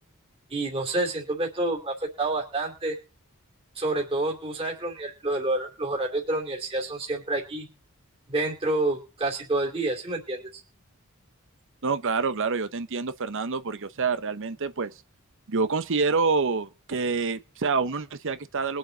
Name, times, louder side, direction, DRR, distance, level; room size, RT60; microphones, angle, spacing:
voice 1, 0.5-2.9 3.8-7.7 8.3-10.6, right 2 dB, 25° right, 2.8 m, -28 dB
voice 2, 11.8-14.9 15.5-18.8, right 4 dB, 60° right, 0.8 m, -27 dB
22.5 x 7.6 x 3.9 m
head